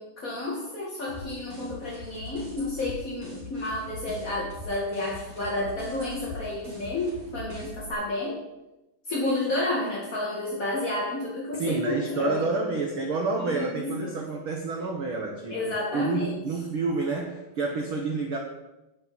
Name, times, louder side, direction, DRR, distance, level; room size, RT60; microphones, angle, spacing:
voice 1, 0.0-8.4 9.1-12.4 13.5-14.1 15.5-16.4, left 2 dB, 40° left, -4 dB, 1.2 m, -31 dB
sound 1, 1.1-7.9, left 1 dB, 45° right, 5.7 m, -42 dB
voice 2, 11.5-18.4, right 3 dB, 80° right, 2 dB, 1.1 m, -29 dB
17.5 x 6.0 x 4.0 m, 0.99 s
omnidirectional pair, 4.0 m